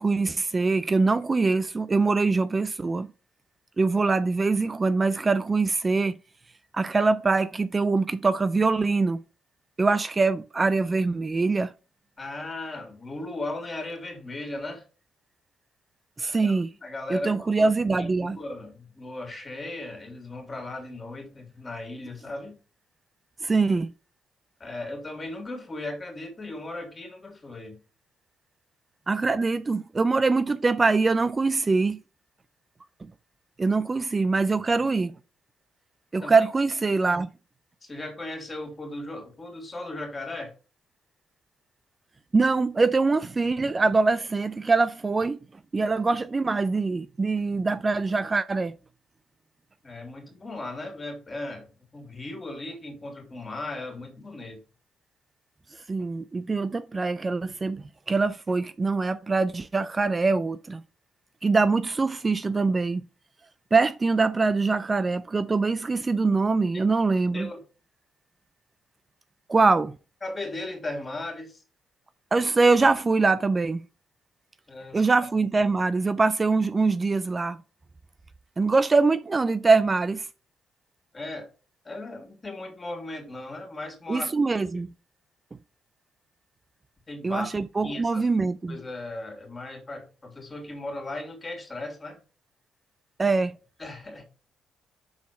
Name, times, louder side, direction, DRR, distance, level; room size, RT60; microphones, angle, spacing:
voice 1, 0.0-3.1 3.8-6.2 6.7-9.2 9.8-11.7 16.2-16.7 17.1-18.4 23.4-23.9 29.1-32.0 33.0-33.1 33.6-35.1 36.1-37.3 42.3-45.4 45.7-48.7 55.7-60.8 61.4-63.0 63.7-67.5 69.5-69.9 72.3-73.8 74.9-77.6 78.6-80.3 84.1-84.9 87.2-88.8 93.2-93.5, right 3 dB, 25° right, 0.4 m, -23 dB
voice 2, 12.2-14.8 16.3-17.7 18.0-22.6 24.6-27.8 36.2-36.3 37.8-40.5 49.8-54.6 67.3-67.6 70.2-71.6 74.7-75.0 81.1-81.5 81.8-84.3 87.1-87.5 87.8-88.3 88.7-92.2 93.8-94.2, left 2 dB, 25° left, 3.0 m, -37 dB
6.4 x 4.2 x 5.8 m
cardioid pair, 90°, 0 cm